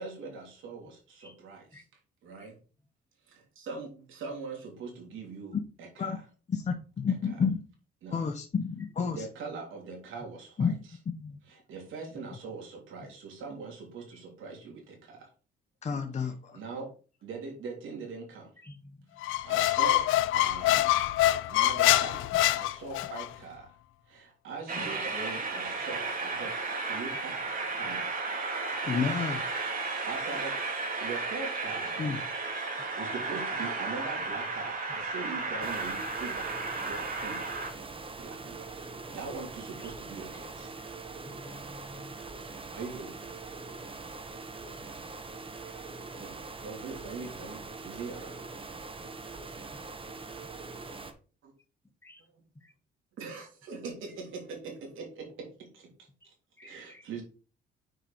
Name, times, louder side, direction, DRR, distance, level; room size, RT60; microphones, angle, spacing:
voice 1, 0.0-1.8 2.2-2.6 3.6-6.1 8.0-8.2 9.1-10.7 11.5-15.3 16.5-16.9 17.2-18.5 19.4-20.9 21.5-23.7 24.1-26.6 26.8-27.4 27.7-28.1 28.9-29.3 29.7-32.0 32.7-37.5 38.2-40.7 42.7-43.4 46.2-48.4 51.4-51.5 52.3-52.4 53.2-56.3 56.6-57.2, right 4 dB, 80° right, 0 dB, 3.2 m, -42 dB
voice 2, 6.5-7.6 8.1-9.2 10.6-10.7 11.2-11.4 15.8-16.6 20.8-20.9 24.8-24.9 28.8-29.4 32.0-32.2, left 6 dB, 35° left, 4 dB, 0.9 m, -30 dB
voice 3, 18.6-19.4 31.7-31.8 32.2-32.5 39.7-39.9 41.3-42.2 45.7-45.8 49.0-49.1 49.7-49.8 52.0-52.3 52.6-52.7 56.2-56.3 56.6-57.0, left 1 dB, 10° left, 6 dB, 1.5 m, -52 dB
Squeak, 19.2-23.3, left 15 dB, 85° left, 0.4 m, -25 dB
Train, 24.7-37.7, right 3 dB, 45° right, 2.2 m, -34 dB
sound 1, 35.6-51.1, right 3 dB, 25° right, 1.1 m, -43 dB
6.6 x 4.8 x 4.5 m, 0.36 s
cardioid pair, 90°, 20 cm